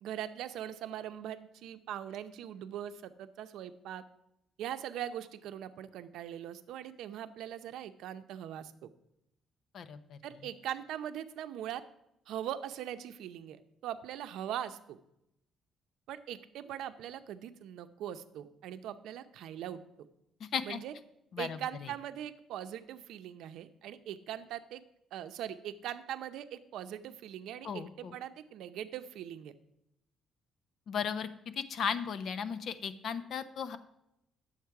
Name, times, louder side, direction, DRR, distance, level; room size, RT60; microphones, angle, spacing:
voice 1, 0.0-4.0 4.6-8.7 10.2-11.8 12.3-15.0 16.1-19.8 20.6-20.9 21.4-24.8 25.1-29.5, right 10 dB, 80° right, 10 dB, 0.6 m, -41 dB
voice 2, 9.7-10.2 20.4-20.8 21.3-21.9 27.6-28.1 30.9-31.3 31.6-33.8, left 6 dB, 55° left, 12 dB, 0.6 m, -36 dB
10.0 x 7.3 x 4.7 m, 0.83 s
cardioid pair, 135°, 0 cm